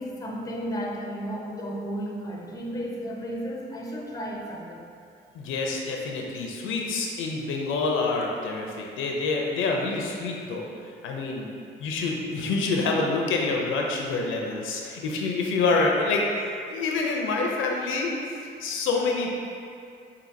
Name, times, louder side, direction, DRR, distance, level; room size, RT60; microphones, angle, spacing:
voice 1, 0.0-4.8, equal, 15° left, -1 dB, 0.6 m, -33 dB
voice 2, 5.3-10.7 11.0-11.5 11.8-18.1 18.6-19.4, left 3 dB, 80° left, 0 dB, 0.5 m, -27 dB
5.0 x 2.6 x 2.6 m, 2.4 s
cardioid pair, 90°, 20 cm